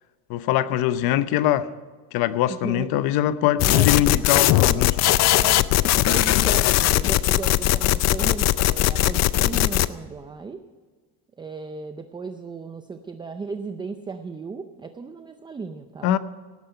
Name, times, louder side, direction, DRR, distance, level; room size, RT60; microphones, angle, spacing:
voice 1, 0.3-1.7 2.1-4.9 16.0-16.2, left 12 dB, 65° left, 14 dB, 0.9 m, -22 dB
voice 2, 2.5-3.1 3.6-4.9 5.3-5.6 6.0-10.6 11.4-16.2, right 4 dB, 10° right, 7 dB, 0.5 m, -35 dB
sound 1, 3.6-9.9, left 15 dB, 45° left, 0.5 m, -19 dB
18.0 x 9.8 x 5.7 m, 1.5 s
cardioid pair, 155°, 39 cm